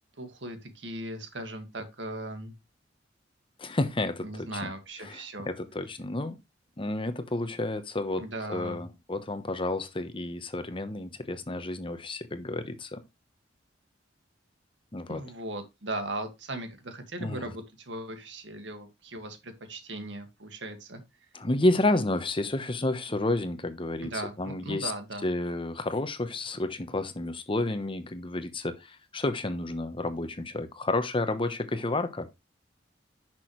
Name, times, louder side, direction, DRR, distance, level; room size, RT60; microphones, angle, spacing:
voice 1, 0.2-2.5 4.2-5.5 8.2-8.8 15.1-21.0 24.0-25.2, right 1 dB, 70° right, 1.9 m, -38 dB
voice 2, 3.6-4.7 5.0-6.4 6.8-8.2 8.5-13.0 14.9-15.2 17.2-17.5 21.3-24.9 25.2-32.3, left 2 dB, 30° left, 1.0 m, -30 dB
10.5 x 6.1 x 3.1 m
head